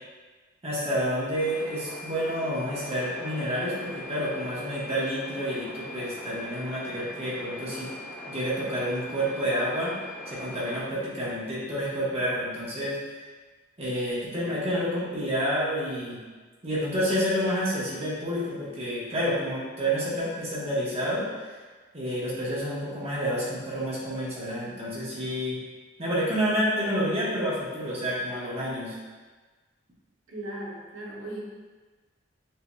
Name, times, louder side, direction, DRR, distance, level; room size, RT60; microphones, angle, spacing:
voice 1, 0.6-7.9 8.3-10.0 10.3-13.0 13.8-16.2 16.6-21.3 21.9-25.6 26.0-29.0, equal, 30° right, -8 dB, 1.2 m, -29 dB
sound 1, 1.3-10.8, left 1 dB, 10° left, 0.9 m, -41 dB
voice 2, 30.3-31.4, right 1 dB, 85° right, -3 dB, 0.9 m, -37 dB
6.6 x 2.8 x 2.3 m, 1.3 s
head